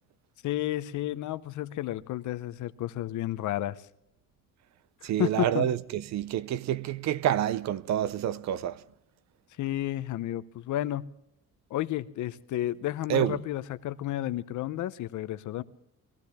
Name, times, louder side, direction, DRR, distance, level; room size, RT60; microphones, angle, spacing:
voice 1, 0.4-3.8 5.0-5.7 9.6-11.1 11.7-15.6, left 13 dB, 65° left, 0.7 m, -32 dB
voice 2, 5.0-8.8 13.1-13.4, right 10 dB, 55° right, 0.6 m, -28 dB
23.0 x 15.0 x 3.5 m
cardioid pair, 150°, 33 cm